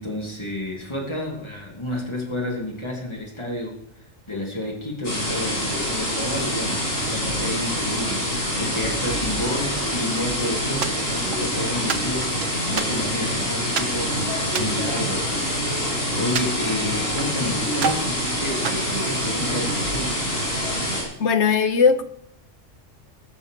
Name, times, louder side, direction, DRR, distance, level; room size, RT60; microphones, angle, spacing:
voice 1, 0.0-3.8 4.3-15.4 15.9-20.2, left 1 dB, 20° left, -1 dB, 3.5 m, -30 dB
sound 1, 5.0-21.0, equal, 85° left, 7.8 m, -26 dB
sound 2, 10.8-11.5 11.9-13.3 13.8-14.0 14.5-15.8 16.4-17.4 17.8-18.1 18.6-19.7, right 6 dB, 70° right, 1.3 m, -30 dB
voice 2, 21.2-22.0, left 5 dB, 65° left, 10 dB, 1.2 m, -18 dB
20.5 x 7.0 x 6.8 m, 0.73 s
omnidirectional pair, 1.3 m